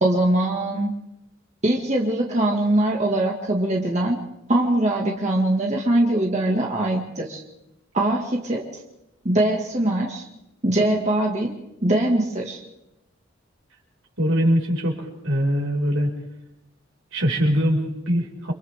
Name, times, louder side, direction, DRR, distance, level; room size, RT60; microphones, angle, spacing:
voice 1, 0.0-0.9 1.6-4.2 4.5-7.4 7.9-8.6 9.2-10.2 10.6-11.6 11.8-12.6, right 1 dB, 35° right, -1 dB, 2.1 m, -22 dB
voice 2, 14.2-16.1 17.1-18.5, equal, 80° right, 0 dB, 5.8 m, -22 dB
29.5 x 26.5 x 3.7 m, 0.87 s
head